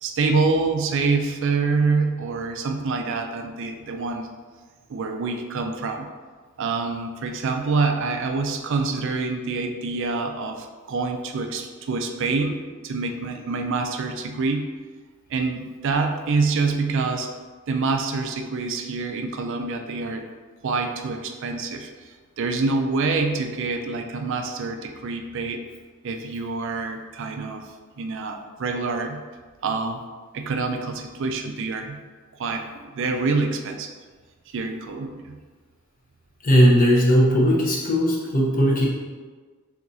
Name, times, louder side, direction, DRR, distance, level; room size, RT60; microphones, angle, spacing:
voice 1, 0.0-4.3 4.9-6.1 6.6-14.7 15.3-17.3 17.7-20.3 20.6-25.6 26.0-29.3 29.6-30.0 30.3-32.0 32.4-33.9 34.5-35.4, right 4 dB, 60° right, 5 dB, 0.4 m, -26 dB
voice 2, 36.4-38.9, equal, 40° left, -3 dB, 0.9 m, -18 dB
4.7 x 3.6 x 2.7 m, 1.4 s
head